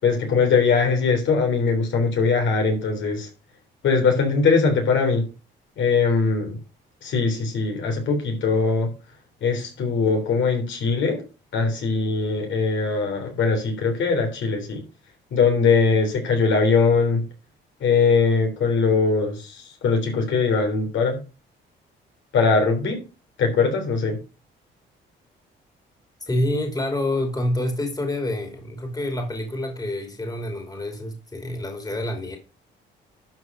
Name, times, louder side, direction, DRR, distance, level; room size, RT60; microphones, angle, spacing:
voice 1, 0.0-3.3 3.8-5.3 5.8-6.6 7.0-8.9 9.4-11.2 11.5-14.8 15.3-17.2 17.8-21.2 22.3-23.0 23.4-24.2, left 4 dB, 70° left, 3.5 m, -21 dB
voice 2, 26.3-32.4, left 1 dB, 20° left, 2.9 m, -27 dB
12.0 x 4.9 x 5.3 m
cardioid pair, 90°, 20 cm